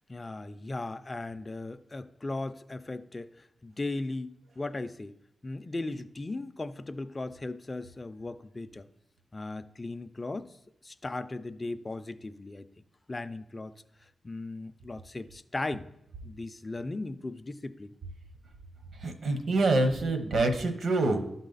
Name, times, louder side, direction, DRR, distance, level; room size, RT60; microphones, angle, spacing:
voice 1, 0.1-5.1 5.4-8.9 9.3-10.6 10.8-12.7 13.1-13.7 14.2-15.9 16.2-17.9, left 2 dB, 30° left, 11 dB, 0.3 m, -37 dB
voice 2, 19.0-21.2, right 2 dB, 75° right, 7 dB, 0.9 m, -26 dB
11.5 x 4.1 x 3.9 m, 0.79 s
cardioid pair, 85°, 0 cm